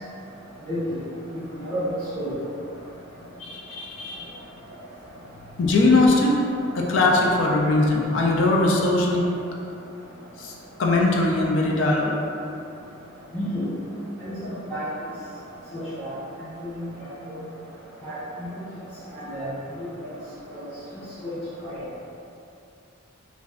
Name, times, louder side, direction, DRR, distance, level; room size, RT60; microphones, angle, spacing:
voice 1, 1.3-1.8 2.1-2.3 13.3-13.7 14.2-14.9 15.7-16.1 16.6-16.8 17.3-17.4 18.0-18.2 19.1-19.5 20.5-20.6 21.2-21.3 21.6-21.8, equal, 10° left, -22 dB, 1.3 m, -31 dB
voice 2, 3.4-4.4 5.6-6.4 6.7-9.3 10.4-12.1, left 2 dB, 65° left, -1 dB, 0.4 m, -21 dB
3.3 x 2.5 x 2.4 m, 2.7 s
head